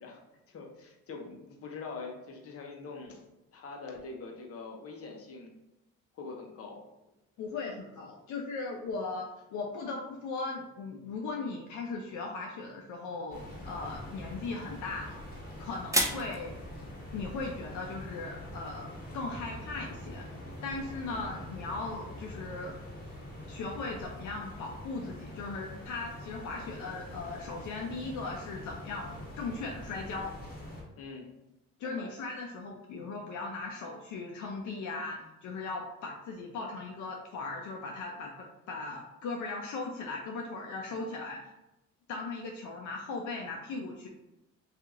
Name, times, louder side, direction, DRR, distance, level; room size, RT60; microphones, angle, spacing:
voice 1, 0.5-3.3 3.5-5.5 6.1-6.8 16.1-16.3 21.1-21.3 31.0-31.3 31.8-32.1 40.9-41.0, left 4 dB, 50° left, 1 dB, 0.8 m, -44 dB
voice 2, 7.4-15.2 15.6-16.5 17.1-20.3 20.6-22.8 23.5-30.3 31.8-41.4 42.1-44.1, left 3 dB, 75° left, 0 dB, 0.5 m, -38 dB
sound 1, 13.3-30.8, left 1 dB, 30° left, 1.4 m, -44 dB
sound 2, 15.7-20.2, right 1 dB, 10° right, 0.4 m, -38 dB
2.8 x 2.5 x 3.6 m, 0.93 s
cardioid pair, 90°, 30 cm